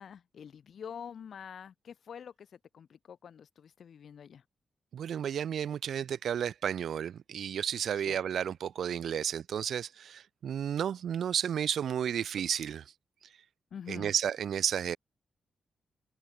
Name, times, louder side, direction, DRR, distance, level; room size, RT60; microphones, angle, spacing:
voice 1, 0.0-4.4 8.0-8.2 13.7-14.1, left 7 dB, 65° left, 5.4 m, -46 dB
voice 2, 4.9-12.8 13.9-15.0, right 8 dB, 75° right, 0.5 m, -32 dB
cardioid pair, 115°, 0 cm